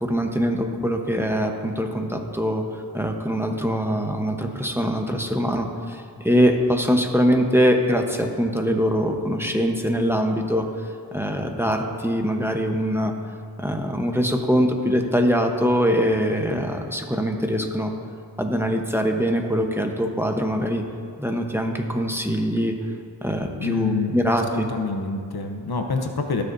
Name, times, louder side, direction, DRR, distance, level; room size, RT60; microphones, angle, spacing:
voice 1, 0.0-2.6 2.9-10.7 11.1-13.1 13.6-17.9 18.4-20.8 21.2-22.7 23.2-24.7, equal, 5° right, 3 dB, 1.0 m, -23 dB
voice 2, 23.6-26.4, left 3 dB, 60° left, 4 dB, 0.9 m, -26 dB
20.0 x 6.7 x 2.7 m, 2.1 s
cardioid pair, 50°, 43 cm